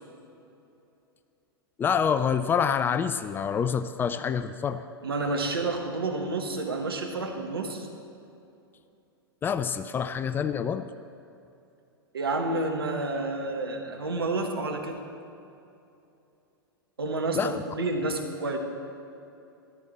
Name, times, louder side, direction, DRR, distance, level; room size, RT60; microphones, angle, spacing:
voice 1, 1.8-4.8 9.4-10.9 17.3-17.6, left 7 dB, 15° left, 11 dB, 0.3 m, -27 dB
voice 2, 5.0-7.9 12.1-15.0 17.0-18.6, right 2 dB, 75° right, 3 dB, 1.5 m, -29 dB
13.5 x 12.5 x 4.2 m, 2.7 s
figure-of-eight pair, 95°, 13 cm